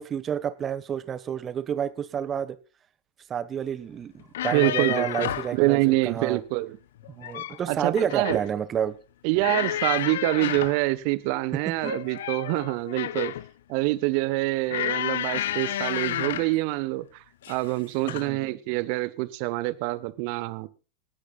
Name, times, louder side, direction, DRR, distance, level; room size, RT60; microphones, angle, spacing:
voice 1, 0.0-2.6 3.3-6.4 7.1-8.9 11.8-11.9 18.1-18.5, right 8 dB, 25° right, 1.3 m, -30 dB
sound 1, 4.2-5.6 7.0-7.6 8.0-8.5 9.4-10.8 11.8-13.5 14.7-16.6 17.4-17.7 18.1-18.3, left 12 dB, 60° left, 0.6 m, -30 dB
voice 2, 4.5-6.8 7.7-8.4 9.2-13.3 13.7-20.7, right 20 dB, 45° right, 1.1 m, -26 dB
28.5 x 9.9 x 2.4 m
figure-of-eight pair, 90°, 0 cm